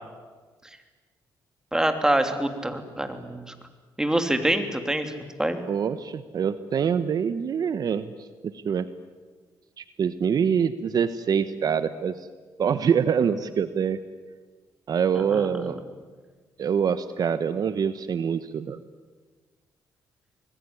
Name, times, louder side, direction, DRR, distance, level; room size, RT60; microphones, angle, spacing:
voice 1, 1.7-3.5 4.0-5.1 5.4-5.6 15.1-15.5, right 1 dB, 5° right, 6 dB, 3.0 m, -25 dB
voice 2, 5.7-8.9 9.8-12.3 12.6-14.0 14.9-15.8 16.6-18.8, right 7 dB, 55° right, 12 dB, 1.1 m, -25 dB
26.0 x 19.5 x 9.8 m, 1.4 s
cardioid pair, 95°, 8 cm